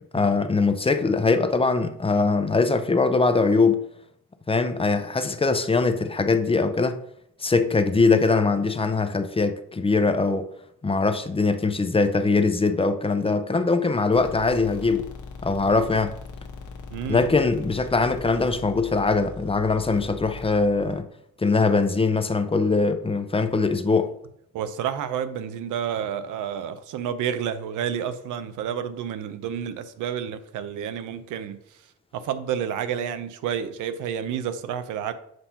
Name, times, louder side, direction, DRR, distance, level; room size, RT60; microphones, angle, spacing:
voice 1, 0.1-3.9 4.5-7.0 7.4-10.5 10.8-15.1 15.4-16.2 17.1-21.1 21.4-24.1, left 3 dB, 20° left, 0.5 m, -22 dB
sound 1, 14.1-21.0, left 4 dB, 75° left, 1.1 m, -40 dB
voice 2, 16.9-17.3 24.5-31.6 32.1-35.1, right 8 dB, 85° right, 0.6 m, -30 dB
7.7 x 2.9 x 5.5 m
cardioid pair, 90°, 30 cm